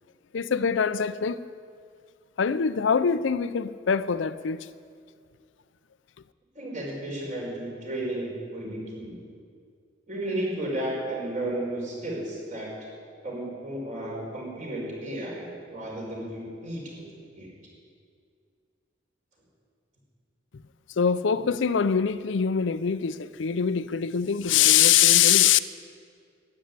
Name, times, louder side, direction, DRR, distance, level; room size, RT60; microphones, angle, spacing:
voice 1, 0.3-1.4 2.4-4.7 21.0-25.6, left 8 dB, 75° left, 0.5 m, -23 dB
voice 2, 6.6-9.2 10.1-12.7 13.2-17.0 17.3-17.5, right 1 dB, 45° right, 5.2 m, -33 dB
12.5 x 10.5 x 9.6 m
head